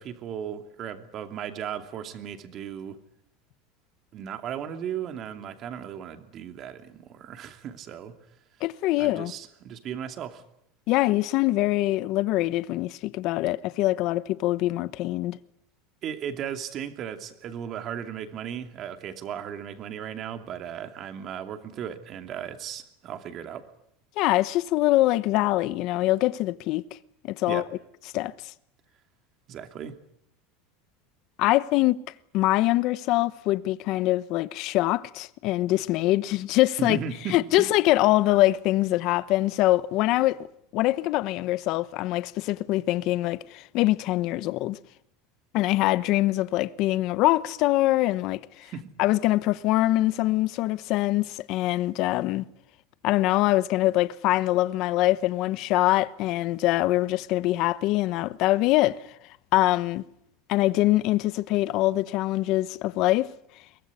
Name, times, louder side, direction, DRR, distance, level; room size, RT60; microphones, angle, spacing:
voice 1, 0.0-3.0 4.1-8.1 9.0-10.4 16.0-23.6 27.5-27.7 29.5-30.0 36.8-37.7 48.6-48.9, right 8 dB, 35° right, 2.6 m, -36 dB
voice 2, 8.6-9.3 10.9-15.4 24.2-26.8 27.4-27.6 28.1-28.3 31.4-32.0 32.3-37.0 37.3-40.5 40.7-44.8 45.5-48.7 49.0-52.4 53.0-59.0 59.5-60.0 60.5-63.3, left 17 dB, 50° left, 1.0 m, -24 dB
23.0 x 19.5 x 9.7 m
supercardioid pair, 145°, 0 cm